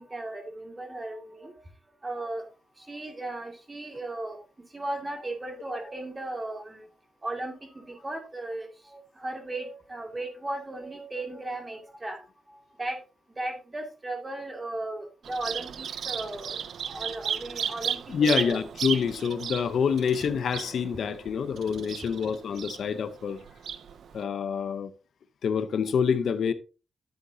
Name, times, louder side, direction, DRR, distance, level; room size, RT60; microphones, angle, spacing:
voice 1, 0.0-1.6 2.0-2.4 2.8-4.4 4.7-6.9 7.2-12.3 12.8-13.0 13.4-18.7, right 2 dB, 20° right, 2.2 m, -36 dB
Bird vocalization bird call bird song, 15.2-24.2, right 8 dB, 75° right, 0.5 m, -35 dB
voice 2, 18.1-23.4 24.1-24.9 25.4-26.5, left 6 dB, 70° left, 0.7 m, -27 dB
10.5 x 8.0 x 2.7 m
wide cardioid pair, 135°, 0 cm